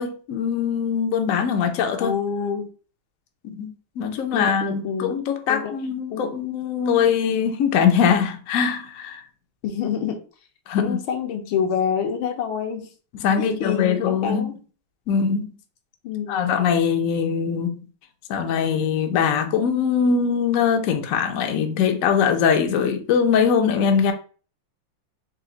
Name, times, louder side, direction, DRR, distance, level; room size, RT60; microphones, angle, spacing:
voice 1, 0.0-2.1 3.4-3.7 4.0-9.2 10.7-11.0 13.2-14.5 15.1-15.5 16.3-17.8 18.3-24.1, left 7 dB, 65° left, 0.8 m, -22 dB
voice 2, 2.0-2.7 4.3-5.2 5.5-5.7 6.1-6.3 9.6-10.2 10.8-12.9 13.4-14.6 16.0-16.6, left 7 dB, 80° left, 1.6 m, -27 dB
4.5 x 2.8 x 3.8 m
omnidirectional pair, 2.2 m